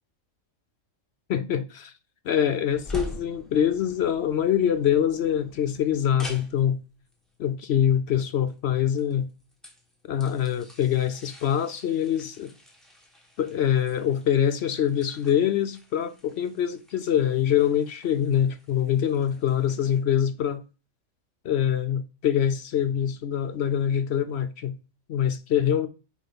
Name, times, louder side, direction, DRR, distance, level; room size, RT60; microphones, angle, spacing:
voice 1, 1.3-1.9 2.2-6.8 7.4-9.3 10.1-12.5 13.4-20.6 21.4-24.7 25.1-25.9, left 9 dB, 60° left, 0.7 m, -24 dB
sound 1, 2.7-20.0, left 1 dB, ahead, 1.4 m, -46 dB
6.3 x 4.8 x 5.1 m
omnidirectional pair, 1.4 m